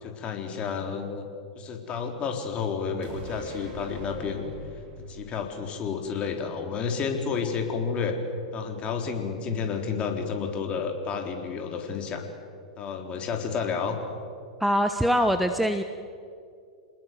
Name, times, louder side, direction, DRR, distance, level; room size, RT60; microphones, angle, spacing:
voice 1, 0.0-1.3 1.6-4.5 5.1-8.2 8.5-12.2 12.8-14.0, left 6 dB, 30° left, 4 dB, 3.9 m, -30 dB
sound 1, 3.0-6.6 6.9-7.0, right 1 dB, 40° right, 6.2 m, -42 dB
voice 2, 14.6-15.8, equal, ahead, 7 dB, 1.1 m, -23 dB
28.0 x 20.0 x 7.8 m, 2.4 s
figure-of-eight pair, 100°, 4 cm